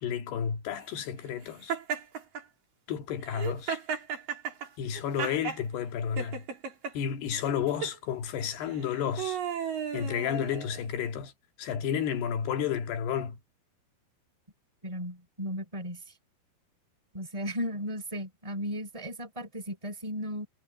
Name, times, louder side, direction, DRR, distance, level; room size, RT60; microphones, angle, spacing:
voice 1, 0.0-1.8 2.9-3.8 4.8-6.4 6.9-9.4 9.9-11.3 11.6-13.4, left 8 dB, 80° left, 4.1 m, -31 dB
Laughter, 1.7-2.4 3.2-5.6 6.2-6.9 7.7-8.0 8.7-10.9, right 7 dB, 60° right, 5.1 m, -34 dB
voice 2, 14.8-16.0 17.1-20.5, equal, 10° right, 4.8 m, -35 dB
omnidirectional pair, 4.6 m